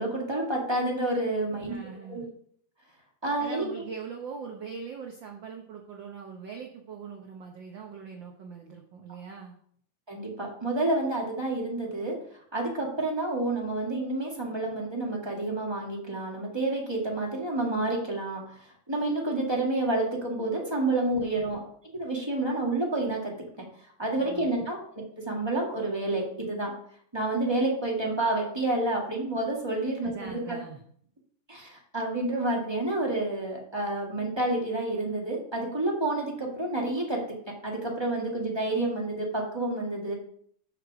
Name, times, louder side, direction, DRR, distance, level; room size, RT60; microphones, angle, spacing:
voice 1, 0.0-1.7 2.1-2.2 3.2-3.7 10.1-12.2 12.5-21.6 21.9-23.3 24.0-24.8 25.2-26.7 27.1-30.6 31.5-37.2 37.5-40.1, right 2 dB, 15° right, -2 dB, 1.1 m, -29 dB
voice 2, 1.7-2.3 3.4-9.6 21.2-21.6 24.2-24.7 30.0-30.8, right 6 dB, 85° right, 2 dB, 1.0 m, -42 dB
6.5 x 6.5 x 6.0 m, 0.62 s
omnidirectional pair, 3.4 m